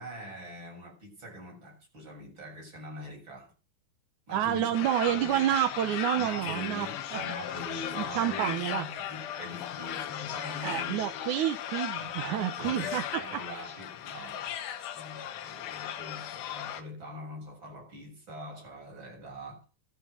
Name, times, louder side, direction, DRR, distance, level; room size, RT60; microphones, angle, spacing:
voice 1, 0.0-3.5 4.3-5.5 6.1-11.1 12.0-19.7, equal, 25° right, 7.9 m, -43 dB
voice 2, 4.3-6.9 7.1-7.2 8.0-8.8 10.6-13.0, right 11 dB, 75° right, 1.9 m, -29 dB
sound 1, 4.7-16.8, left 10 dB, 80° left, 3.5 m, -37 dB
13.0 x 9.3 x 6.6 m
omnidirectional pair, 4.8 m